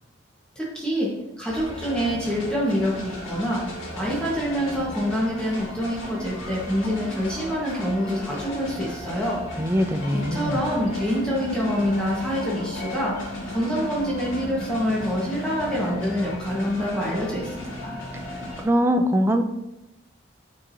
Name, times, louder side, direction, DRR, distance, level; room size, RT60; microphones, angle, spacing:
voice 1, 0.6-1.1 1.4-3.6 4.0-9.4 10.1-13.2 13.5-17.9, equal, 5° left, -6 dB, 1.3 m, -26 dB
sound 1, 1.5-18.6, left 1 dB, 90° left, 2.1 m, -36 dB
voice 2, 9.6-10.6 18.6-19.4, equal, 10° right, 5 dB, 0.4 m, -22 dB
Wind instrument woodwind instrument, 10.0-16.5, left 2 dB, 65° left, 0.4 m, -37 dB
8.7 x 4.7 x 2.7 m, 0.90 s
head